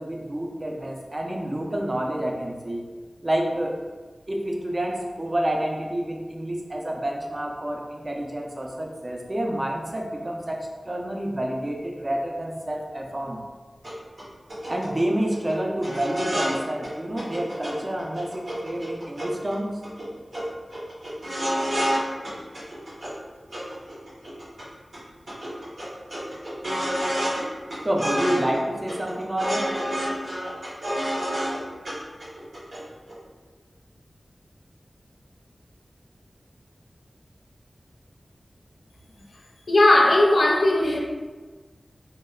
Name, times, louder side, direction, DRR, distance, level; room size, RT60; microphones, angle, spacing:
voice 1, 0.0-2.8 3.2-3.8 4.3-13.4 14.7-19.7 27.8-29.7, right 1 dB, 35° right, 0 dB, 0.4 m, -28 dB
sound 1, 13.8-13.9 14.2-14.3 14.5-15.0 15.3-15.5 15.8-16.6 16.8-16.9 17.2-17.7 18.0-19.5 19.8-20.1 20.3-20.4 20.7-22.0 22.2-23.1 23.5-24.6 24.9-25.0 25.3-27.4 27.7-28.6 28.9-31.6 31.9-32.0 32.2-32.8 33.1-33.2, equal, 90° right, 1.0 m, -29 dB
voice 2, 39.7-41.0, left 1 dB, 80° left, -1 dB, 0.4 m, -17 dB
2.9 x 2.0 x 2.3 m, 1.4 s
wide cardioid pair, 65°, 0 cm